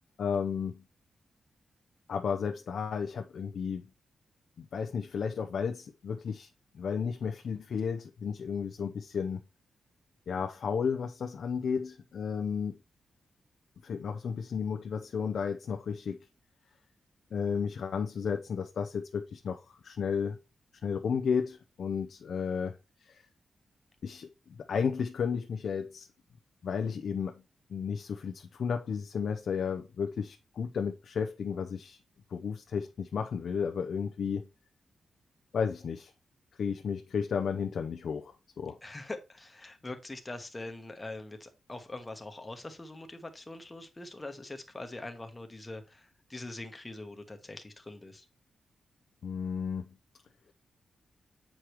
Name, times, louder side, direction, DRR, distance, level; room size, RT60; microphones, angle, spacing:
voice 1, 0.2-0.8 2.1-3.8 4.6-6.5 6.7-9.4 10.3-12.8 13.8-16.2 17.3-20.4 20.8-22.7 23.0-23.2 24.0-26.1 26.6-27.3 27.7-32.0 32.3-34.5 35.5-36.1 36.6-38.8 49.2-49.9, left 6 dB, 65° left, 0.6 m, -33 dB
voice 2, 38.8-48.2, left 2 dB, 15° left, 1.1 m, -43 dB
7.5 x 4.9 x 3.0 m
wide cardioid pair, 150°, 0 cm